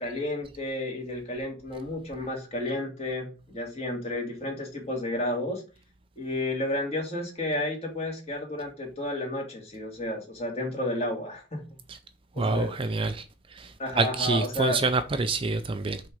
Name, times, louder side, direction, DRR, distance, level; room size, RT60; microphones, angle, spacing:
voice 1, 0.0-5.6 6.2-11.8 12.3-12.7 13.8-14.8, left 1 dB, 35° left, 2.4 m, -32 dB
voice 2, 12.4-13.2 13.6-16.0, right 3 dB, 30° right, 0.4 m, -27 dB
6.0 x 3.8 x 6.2 m
head